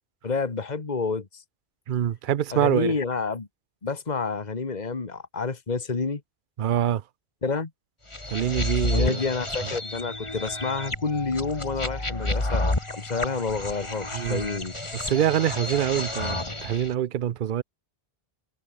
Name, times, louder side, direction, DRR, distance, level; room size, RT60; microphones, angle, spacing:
voice 1, 0.2-1.4 2.5-3.5 3.8-6.2 7.4-7.7 8.9-14.7, left 4 dB, 45° left, 1.8 m, -29 dB
voice 2, 1.9-2.9 6.6-7.0 8.3-9.2 14.1-14.4 14.9-17.6, right 10 dB, 60° right, 0.7 m, -25 dB
sound 1, 8.1-16.9, left 2 dB, 30° left, 2.4 m, -30 dB
omnidirectional pair, 1.0 m